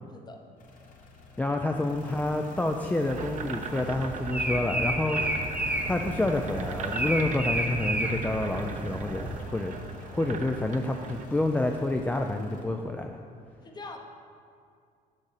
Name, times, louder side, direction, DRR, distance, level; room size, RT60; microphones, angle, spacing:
sound 1, 0.6-12.6, left 2 dB, 50° left, 1.1 m, -48 dB
voice 1, 1.4-5.2 5.9-9.7 10.0-13.2, left 2 dB, 10° left, 3 dB, 0.3 m, -28 dB
sound 2, 3.0-11.3, right 5 dB, 50° right, 0.5 m, -39 dB
sound 3, 3.8-9.4, right 1 dB, 5° right, 0.7 m, -31 dB
voice 2, 13.6-14.0, left 3 dB, 25° left, 4 dB, 0.8 m, -42 dB
6.5 x 4.7 x 5.7 m, 2.3 s
cardioid pair, 110°, 17 cm